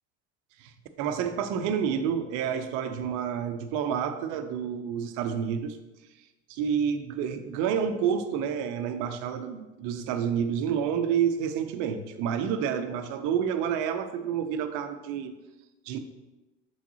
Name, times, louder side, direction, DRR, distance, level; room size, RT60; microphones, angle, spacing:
voice 1, 1.0-5.8 6.5-15.3 15.9-16.0, right 8 dB, 60° right, 8 dB, 0.7 m, -29 dB
6.4 x 5.9 x 2.9 m, 1.1 s
hypercardioid pair, 80°, 35 cm